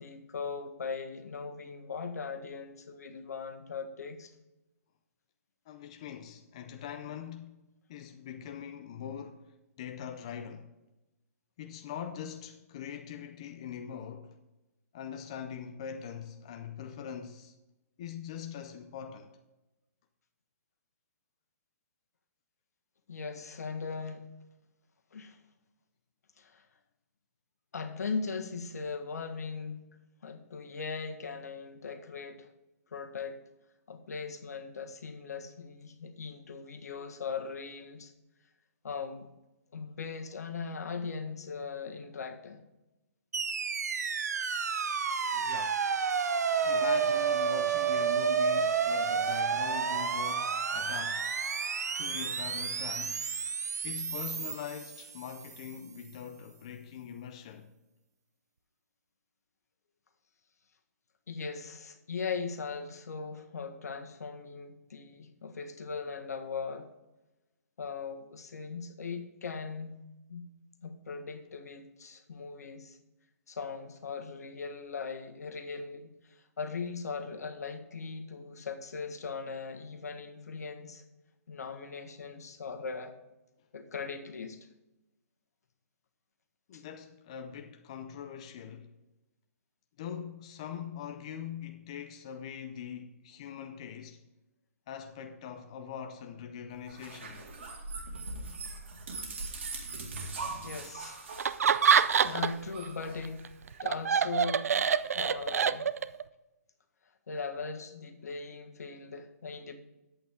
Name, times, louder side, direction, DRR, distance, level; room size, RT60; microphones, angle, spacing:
voice 1, 0.0-4.3 23.1-24.2 25.1-25.4 26.4-26.6 27.7-29.9 30.2-32.5 32.9-33.4 33.9-38.1 38.8-39.3 39.7-42.6 61.3-66.9 67.8-70.0 70.3-70.5 70.8-73.0 73.5-81.0 81.5-83.1 83.7-84.6 86.7-86.8 100.6-101.3 102.2-103.5 103.8-104.7 105.1-105.9 107.3-109.7, left 5 dB, 80° left, 1.5 m, -39 dB
voice 2, 5.7-7.6 7.9-10.7 11.6-14.4 14.9-17.6 18.0-19.3 45.3-45.8 46.6-51.3 51.9-53.3 53.8-57.7 86.7-88.9 90.0-94.2 94.9-97.5, left 8 dB, 20° left, 0.4 m, -42 dB
sound 1, 43.3-55.6, right 6 dB, 90° right, 0.9 m, -30 dB
sound 2, 96.9-103.8, right 3 dB, 50° right, 2.0 m, -41 dB
Laughter, 101.4-102.7 103.0-106.2, right 7 dB, 65° right, 0.5 m, -26 dB
10.5 x 8.4 x 3.6 m
hypercardioid pair, 180°, 9 cm